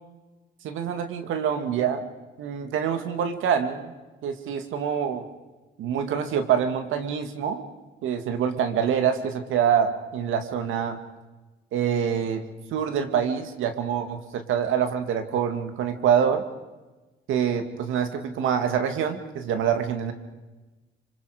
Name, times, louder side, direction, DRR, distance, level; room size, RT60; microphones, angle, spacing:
voice 1, 0.6-2.1 2.4-3.9 4.2-5.2 5.8-7.6 8.0-11.0 11.7-12.4 12.7-16.4 17.3-20.1, right 8 dB, 85° right, 8 dB, 2.2 m, -25 dB
26.5 x 25.0 x 5.1 m, 1.2 s
cardioid pair, 90°, 20 cm